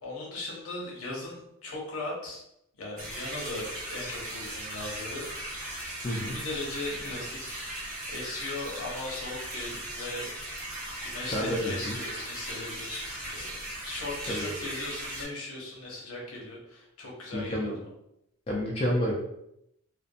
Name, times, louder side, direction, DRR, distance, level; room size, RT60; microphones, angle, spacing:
voice 1, 0.0-2.4 2.8-5.3 5.6-5.7 6.1-7.7 8.1-10.3 11.0-13.5 13.9-17.7, left 2 dB, 75° left, -2 dB, 0.8 m, -38 dB
sound 1, 3.0-15.2, right 1 dB, 40° right, 0.8 m, -38 dB
voice 2, 6.0-6.4 11.3-12.0 14.3-14.5 17.3-17.8 18.5-19.1, equal, 25° left, -3 dB, 0.4 m, -29 dB
2.5 x 2.0 x 2.5 m, 0.79 s
head